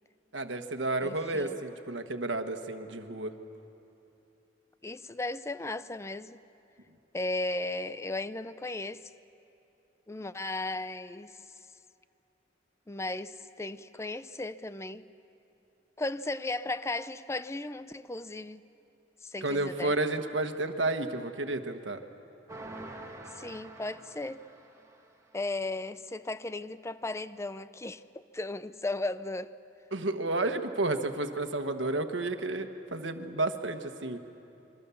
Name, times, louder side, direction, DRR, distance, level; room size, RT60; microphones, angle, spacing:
voice 1, 0.3-3.3 19.4-22.0 29.9-34.2, right 2 dB, 80° right, 1.3 m, -31 dB
voice 2, 1.0-1.6 4.8-6.4 7.1-9.1 10.1-11.4 12.9-15.0 16.0-18.6 19.2-19.9 23.3-24.4 25.3-29.5, left 2 dB, 15° left, 0.5 m, -36 dB
sound 1, 22.5-25.2, right 2 dB, 20° right, 2.0 m, -46 dB
27.0 x 23.5 x 7.1 m
head